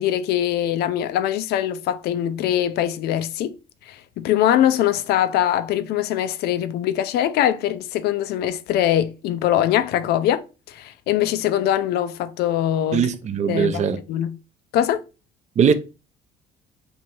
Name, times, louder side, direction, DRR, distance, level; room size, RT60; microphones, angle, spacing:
voice 1, 0.0-3.5 3.9-10.4 10.7-13.1 13.5-14.4 14.7-15.0, left 11 dB, 70° left, 0.4 m, -22 dB
voice 2, 12.9-14.0 15.6-15.7, right 7 dB, 45° right, 0.5 m, -20 dB
3.0 x 2.6 x 4.4 m
cardioid pair, 110°, 17 cm